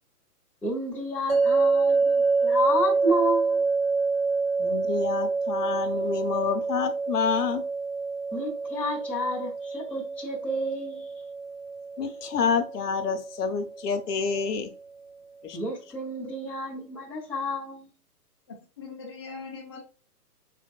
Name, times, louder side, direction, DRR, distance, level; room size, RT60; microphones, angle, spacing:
voice 1, 0.6-3.6 8.3-11.1 15.5-17.9, equal, 5° left, 0.9 m, -30 dB
sound 1, 1.3-14.4, right 4 dB, 40° right, 2.0 m, -27 dB
voice 2, 4.6-7.6 12.0-14.7 15.4-15.6, left 6 dB, 75° left, 1.0 m, -28 dB
voice 3, 18.5-19.8, left 4 dB, 20° left, 0.5 m, -41 dB
4.4 x 4.1 x 2.4 m
hypercardioid pair, 150°, 48 cm